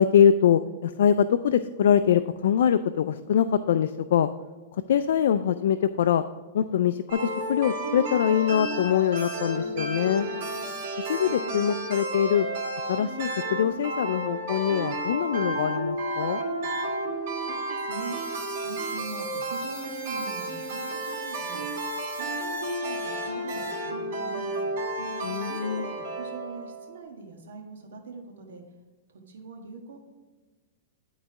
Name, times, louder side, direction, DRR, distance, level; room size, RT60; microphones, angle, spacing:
voice 1, 0.0-4.3 4.9-6.2 6.5-10.3 11.0-12.5 12.9-16.4 25.2-25.9, left 9 dB, 75° left, 9 dB, 0.4 m, -23 dB
sound 1, 7.1-27.0, right 1 dB, 55° right, 2.3 m, -32 dB
voice 2, 17.4-21.7 22.1-24.7 25.5-28.6 29.1-30.0, right 4 dB, 90° right, 3 dB, 1.6 m, -42 dB
11.0 x 4.0 x 4.7 m, 1.3 s
supercardioid pair, 155°, 0 cm